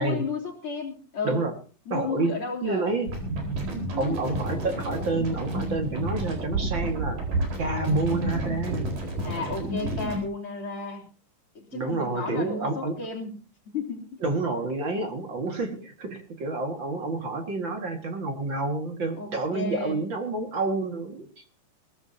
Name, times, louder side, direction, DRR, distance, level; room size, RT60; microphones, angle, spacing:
voice 1, 0.0-1.4 1.9-3.0 7.6-7.9 9.2-11.0 11.6-13.4 13.7-14.1 19.2-20.0, left 4 dB, 40° left, -1 dB, 3.7 m, -33 dB
voice 2, 1.9-2.3 2.6-3.1 4.0-7.2 7.6-9.0 11.7-13.0 14.2-21.5, right 3 dB, 40° right, 4 dB, 2.3 m, -29 dB
sound 1, 3.1-10.2, right 1 dB, 85° right, 5.9 m, -30 dB
21.0 x 16.5 x 2.9 m, 0.36 s
omnidirectional pair, 3.8 m